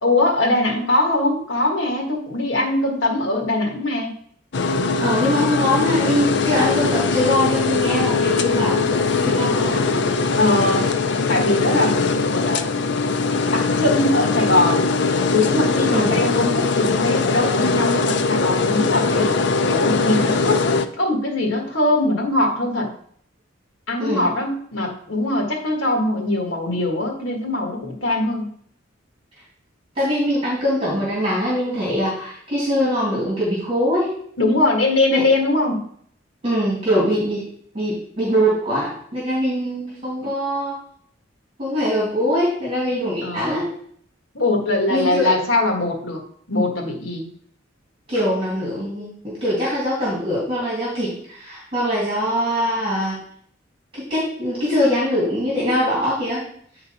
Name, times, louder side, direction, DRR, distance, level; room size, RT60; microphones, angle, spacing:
voice 1, 0.0-4.1 8.5-8.6 10.3-12.7 13.5-14.9 15.3-19.4 19.6-22.9 23.9-28.5 34.4-35.9 43.2-43.6 44.3-46.2 46.5-47.3, left 2 dB, 85° left, 1 dB, 1.6 m, -21 dB
sound 1, 4.5-20.9, left 4 dB, 65° left, 0.5 m, -21 dB
voice 2, 5.0-10.0 15.9-16.2 24.0-24.2 30.0-34.1 35.1-35.2 36.4-37.4 37.7-40.8 41.6-43.7 44.9-45.3 48.1-53.2 53.9-56.4, equal, 30° right, -6 dB, 2.3 m, -22 dB
9.3 x 3.8 x 4.2 m, 0.63 s
head